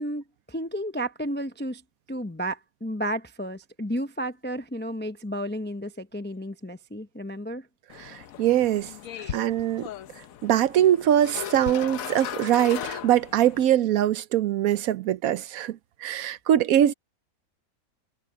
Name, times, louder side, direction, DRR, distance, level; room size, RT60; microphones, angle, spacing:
voice 1, 0.0-1.8 2.1-7.7 9.1-9.4, equal, 10° left, 0.5 m, -32 dB
sound 1, 7.9-13.7, left 10 dB, 70° left, 1.2 m, -37 dB
voice 2, 7.9-8.9 9.3-9.9 10.4-16.9, right 11 dB, 75° right, 1.1 m, -23 dB
omnidirectional pair, 1.6 m